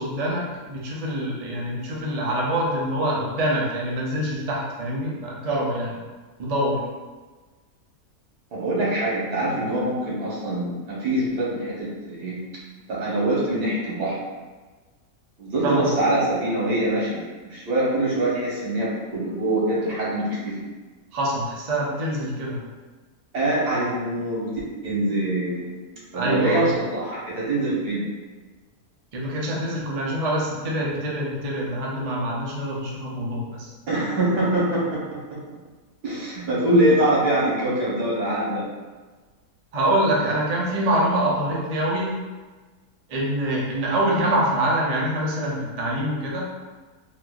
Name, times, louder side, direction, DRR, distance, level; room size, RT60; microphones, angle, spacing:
voice 1, 0.0-6.0 6.4-6.8 15.6-15.8 21.1-22.6 26.1-26.7 29.1-33.7 39.7-42.2 43.1-46.5, right 1 dB, 65° right, -4 dB, 0.3 m, -25 dB
voice 2, 8.5-12.4 12.9-14.2 15.4-20.7 23.3-24.5 24.8-25.7 26.1-28.1 33.9-35.4 36.0-38.6, right 1 dB, 85° right, -6 dB, 1.6 m, -24 dB
3.8 x 2.6 x 2.3 m, 1.3 s
omnidirectional pair, 1.6 m